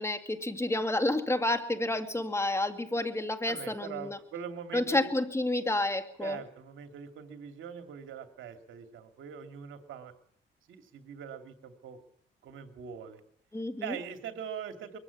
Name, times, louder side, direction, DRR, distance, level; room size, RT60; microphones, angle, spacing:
voice 1, 0.0-4.2 4.7-6.4 13.5-14.0, left 2 dB, 15° left, 8 dB, 2.2 m, -30 dB
voice 2, 3.5-5.1 6.2-10.1 10.7-12.0 12.4-13.2 13.8-15.0, right 8 dB, 80° right, 6 dB, 2.6 m, -42 dB
23.0 x 14.5 x 8.3 m, 0.64 s
cardioid pair, 90°, 20 cm